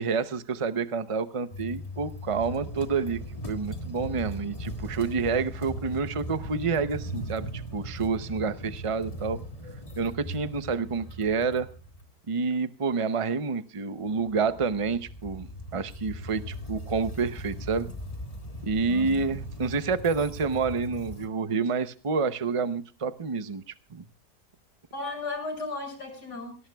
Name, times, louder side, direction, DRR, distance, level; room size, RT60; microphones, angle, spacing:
voice 1, 0.0-3.2 3.5-9.4 10.0-11.7 12.3-15.5 15.7-17.9 18.6-24.0, right 5 dB, 55° right, 12 dB, 0.3 m, -28 dB
sound 1, 1.5-12.1 14.1-21.3, equal, 20° left, 1.7 m, -38 dB
voice 2, 18.9-19.3 24.9-26.6, left 3 dB, 80° left, 2 dB, 7.1 m, -35 dB
20.0 x 18.0 x 2.3 m, 0.34 s
omnidirectional pair, 1.8 m